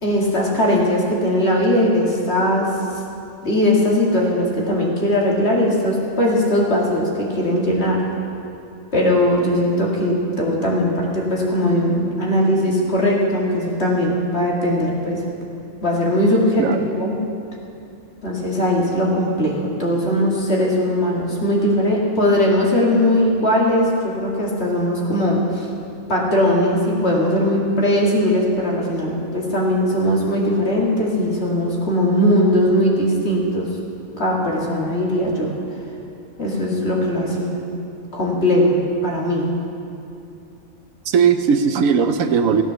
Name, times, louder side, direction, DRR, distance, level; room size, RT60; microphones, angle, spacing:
voice 1, 0.0-2.7 3.4-8.0 8.9-15.2 15.8-17.1 18.2-25.7 26.1-33.7 34.2-35.5 36.4-37.6 38.1-39.5, left 1 dB, 50° left, -3 dB, 2.4 m, -19 dB
voice 2, 16.6-16.9 41.0-42.6, right 6 dB, 80° right, 8 dB, 1.2 m, -18 dB
15.5 x 8.9 x 6.9 m, 2.6 s
omnidirectional pair, 1.4 m